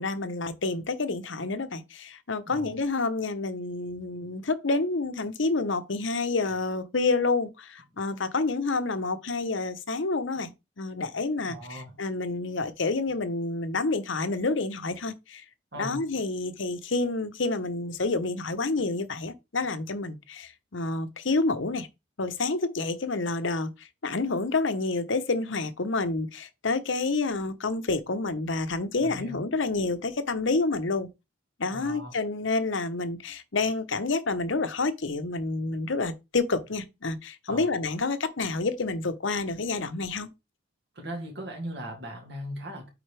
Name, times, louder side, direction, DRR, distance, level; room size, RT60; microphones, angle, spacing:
voice 1, 0.0-15.4 15.8-21.9 22.2-31.1 31.6-40.3, left 3 dB, 65° left, 0.9 m, -29 dB
voice 2, 2.5-2.8 11.4-12.0 15.7-16.1 29.0-29.4 31.7-32.2 37.5-37.7 40.9-42.9, equal, 55° right, 2.5 m, -38 dB
8.9 x 4.2 x 3.4 m
head